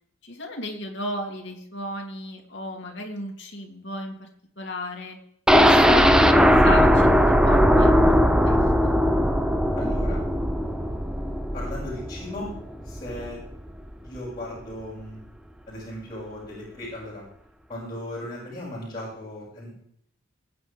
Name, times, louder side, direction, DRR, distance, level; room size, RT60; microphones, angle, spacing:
voice 1, 0.2-4.3 4.6-5.2 5.6-6.1 6.3-8.9, left 1 dB, 55° left, 1 dB, 2.9 m, -34 dB
sound 1, 5.5-13.3 13.7-13.8 14.2-14.3, equal, 5° right, 0.7 m, -19 dB
voice 2, 9.8-10.2 11.5-12.5 12.8-13.4 14.0-15.2 15.7-17.2 17.7-19.8, left 1 dB, 20° left, -11 dB, 6.6 m, -36 dB
21.0 x 9.6 x 3.6 m, 0.67 s
head